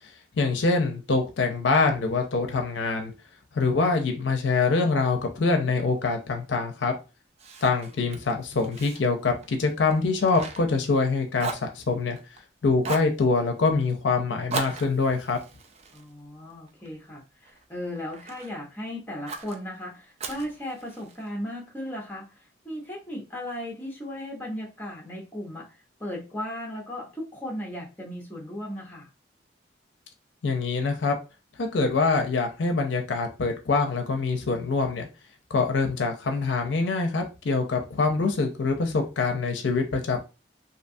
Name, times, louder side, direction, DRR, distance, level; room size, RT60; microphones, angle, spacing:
voice 1, 0.4-3.1 3.5-6.9 7.6-12.2 12.6-15.4 30.4-31.1 31.6-35.1 35.5-40.2, left 4 dB, 70° left, 4 dB, 0.5 m, -24 dB
Fire, 7.4-11.1 11.4-12.4 12.8-13.2 14.5-16.9 17.4-18.5 19.3-19.6 20.2-21.3, right 4 dB, 35° right, 0.3 m, -38 dB
voice 2, 15.9-29.1, left 1 dB, 10° left, -2 dB, 0.7 m, -36 dB
2.6 x 2.2 x 2.6 m, 0.30 s
head